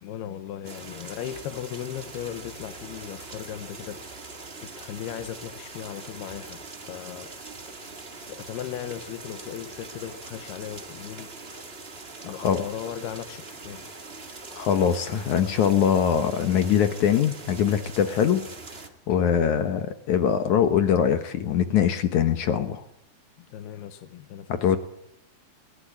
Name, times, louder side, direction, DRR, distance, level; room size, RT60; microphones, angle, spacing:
voice 1, 0.0-4.0 4.6-6.6 6.9-7.3 8.3-11.3 12.2-13.9 23.4-24.8, left 10 dB, 85° left, 3.2 m, -37 dB
sound 1, 0.6-18.9, right 3 dB, 55° right, 0.6 m, -42 dB
voice 2, 14.5-18.5 19.1-22.8 24.5-24.8, left 8 dB, 65° left, 2.1 m, -22 dB
20.0 x 19.0 x 8.8 m
omnidirectional pair, 4.5 m